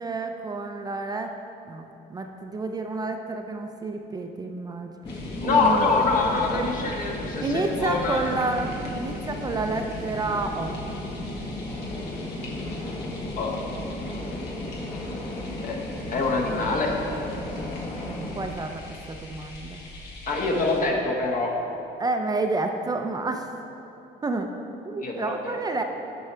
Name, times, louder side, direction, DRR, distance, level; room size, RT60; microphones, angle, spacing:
voice 1, 0.0-1.3 1.7-4.9 5.4-6.1 6.5-6.7 7.4-10.7 18.0-18.8 19.1-19.8 22.0-23.4 24.2-24.5 24.8-25.8, right 3 dB, 25° right, 4 dB, 0.5 m, -29 dB
sound 1, 5.0-18.5, left 1 dB, 30° left, 1.0 m, -34 dB
sound 2, 5.1-20.8, left 1 dB, 80° left, 1.6 m, -43 dB
voice 2, 5.4-8.2 13.4-13.6 15.6-15.8 16.1-16.9 20.3-21.5 25.0-25.6, left 3 dB, 50° left, 0 dB, 1.4 m, -25 dB
13.0 x 4.7 x 4.4 m, 2.9 s
cardioid pair, 110°, 17 cm